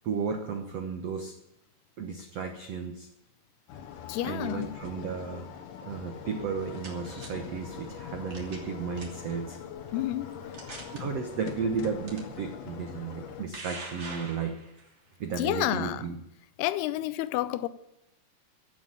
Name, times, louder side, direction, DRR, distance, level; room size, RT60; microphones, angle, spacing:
voice 1, 0.0-1.3 2.0-3.1 4.2-5.5 5.8-9.6 11.0-14.6 15.2-16.2, right 5 dB, 85° right, 1.4 m, -34 dB
sound 1, 3.7-13.5, left 8 dB, 65° left, 2.5 m, -42 dB
voice 2, 4.1-4.8 9.9-10.4 11.0-11.1 15.4-16.1 16.6-17.7, left 14 dB, 80° left, 2.6 m, -30 dB
sound 2, 6.4-7.3 8.3-8.7 9.0-9.3 10.0-10.1 10.5-11.0 12.1-12.2 13.1-14.9, right 3 dB, 30° right, 3.0 m, -43 dB
15.5 x 7.2 x 9.0 m
omnidirectional pair, 4.8 m